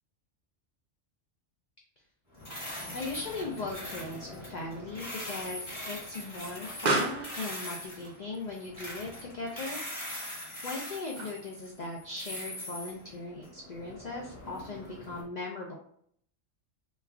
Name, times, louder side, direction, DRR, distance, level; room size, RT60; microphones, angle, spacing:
sound 1, 2.3-15.2, left 1 dB, 25° left, 1.2 m, -42 dB
voice 1, 2.9-9.8 10.6-15.7, left 3 dB, 60° left, 0 dB, 0.4 m, -38 dB
Explosion, 4.6-11.7, right 2 dB, 50° right, 0.5 m, -39 dB
3.1 x 2.3 x 3.4 m, 0.63 s
omnidirectional pair, 1.2 m